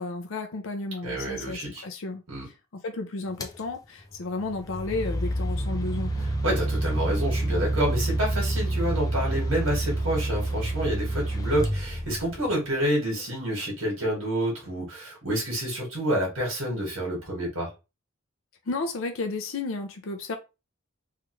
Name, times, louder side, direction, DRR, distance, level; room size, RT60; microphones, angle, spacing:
voice 1, 0.0-6.3 18.7-20.4, left 3 dB, 70° left, 0.5 m, -33 dB
voice 2, 1.0-1.8 2.3-2.5 6.4-17.7, right 1 dB, 75° right, 1.6 m, -28 dB
sound 1, 3.4-3.6 4.5-12.5, right 1 dB, 20° left, 0.4 m, -28 dB
3.2 x 2.4 x 3.0 m
head